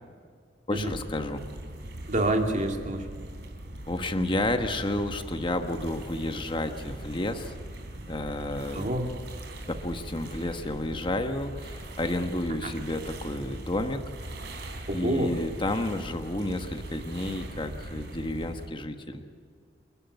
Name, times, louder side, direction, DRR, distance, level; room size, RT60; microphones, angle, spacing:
voice 1, 0.7-1.4 3.9-7.5 8.1-8.8 9.7-14.3 14.9-19.2, left 1 dB, 25° left, 6 dB, 1.3 m, -31 dB
sound 1, 0.7-18.7, right 1 dB, 65° right, 3.4 m, -40 dB
voice 2, 2.1-3.1 8.7-9.1 12.6-12.7 14.9-15.4, right 1 dB, 40° right, 3 dB, 2.6 m, -27 dB
29.5 x 11.5 x 8.4 m, 2.1 s
head